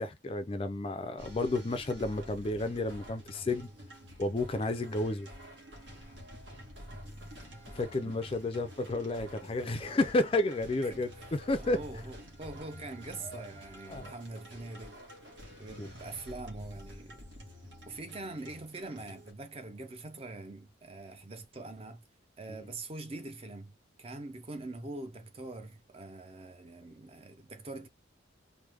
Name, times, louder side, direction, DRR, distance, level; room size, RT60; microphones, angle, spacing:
voice 1, 0.0-3.7 4.2-5.3 7.7-11.8 13.2-13.5 13.9-14.1 15.8-15.9, left 2 dB, 30° left, 0.3 m, -31 dB
sound 1, 1.2-19.3, equal, 75° right, 1.2 m, -48 dB
voice 2, 10.8-15.0 15.6-17.2 17.9-22.0 22.4-23.7 24.0-27.9, right 2 dB, 30° right, 0.5 m, -44 dB
3.3 x 2.1 x 3.3 m
head